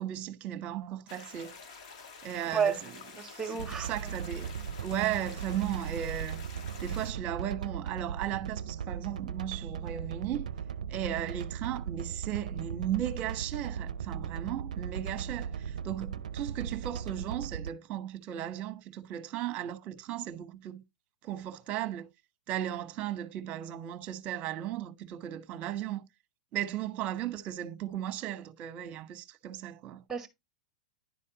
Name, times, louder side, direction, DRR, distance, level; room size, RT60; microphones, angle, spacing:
voice 1, 0.0-1.5 2.2-4.5 4.8-6.4 6.8-10.5 10.9-20.8 21.2-22.1 22.5-26.0 26.5-30.0, right 11 dB, 40° right, 1.1 m, -36 dB
sound 1, 1.1-7.1, left 5 dB, 60° left, 2.2 m, -49 dB
voice 2, 3.2-4.1 30.1-30.3, right 6 dB, 10° right, 1.9 m, -31 dB
sound 2, 3.6-17.7, right 7 dB, 80° right, 0.5 m, -38 dB
10.5 x 4.2 x 4.0 m
hypercardioid pair, 110°, 4 cm